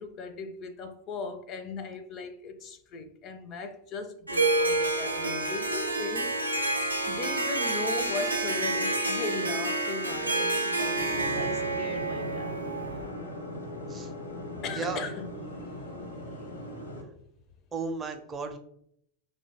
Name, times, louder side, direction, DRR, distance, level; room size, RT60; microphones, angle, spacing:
voice 1, 0.0-6.4 6.8-12.6 14.6-16.1 16.4-16.5, left 4 dB, 35° left, 0.4 m, -38 dB
Harp, 4.3-13.0, right 2 dB, 85° right, 0.4 m, -29 dB
sound 1, 11.0-17.0, equal, 75° left, 0.7 m, -39 dB
voice 2, 14.7-15.0 17.7-18.6, right 4 dB, 20° right, 0.5 m, -34 dB
2.8 x 2.2 x 4.1 m
figure-of-eight pair, 90°, 0 cm